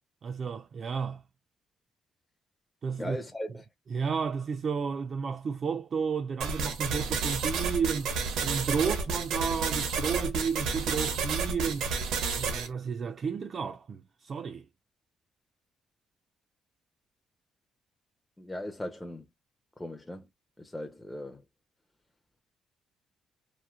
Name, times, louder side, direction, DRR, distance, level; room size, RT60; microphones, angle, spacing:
voice 1, 0.2-1.2 2.8-3.2 3.9-12.0 12.4-14.7, right 6 dB, 50° right, 0.4 m, -32 dB
voice 2, 3.0-3.6 18.4-19.2 19.8-20.3 20.6-21.4, left 1 dB, 10° left, 0.5 m, -38 dB
sound 1, 6.4-12.7, right 5 dB, 85° right, 1.0 m, -31 dB
3.1 x 2.6 x 2.3 m
cardioid pair, 90°, 0 cm